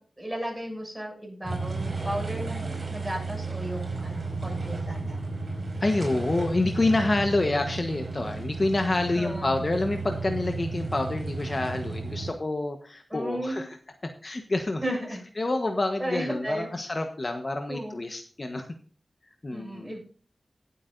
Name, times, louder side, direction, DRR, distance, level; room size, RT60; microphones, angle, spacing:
voice 1, 0.0-5.2 9.1-9.5 13.1-13.6 14.8-15.2 16.0-16.7 17.7-18.0 19.5-20.0, equal, 10° right, 0 dB, 6.7 m, -34 dB
sound 1, 1.4-12.3, right 3 dB, 50° right, 4.6 m, -33 dB
voice 2, 5.8-13.8 14.2-14.8 15.4-18.7 19.4-19.9, left 2 dB, 40° left, 5 dB, 1.2 m, -27 dB
18.5 x 8.3 x 2.6 m, 0.41 s
wide cardioid pair, 100°, 0 cm